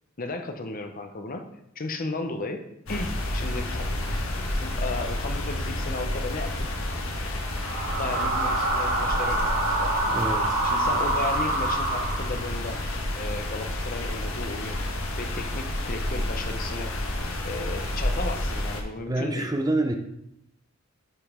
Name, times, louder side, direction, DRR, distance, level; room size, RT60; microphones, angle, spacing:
voice 1, 0.2-1.5 1.8-2.6 2.9-3.9 4.6-6.7 7.9-9.9 10.6-12.8 13.1-14.8 15.2-16.9 17.4-19.5, left 2 dB, 45° left, 6 dB, 0.8 m, -34 dB
sound 1, 2.9-18.8, left 1 dB, 85° left, 1.3 m, -30 dB
sound 2, 7.5-12.6, right 2 dB, 80° right, 1.6 m, -26 dB
voice 2, 10.1-10.6 19.1-19.9, right 2 dB, 20° right, 5 dB, 0.7 m, -27 dB
10.5 x 5.2 x 3.6 m, 0.80 s
head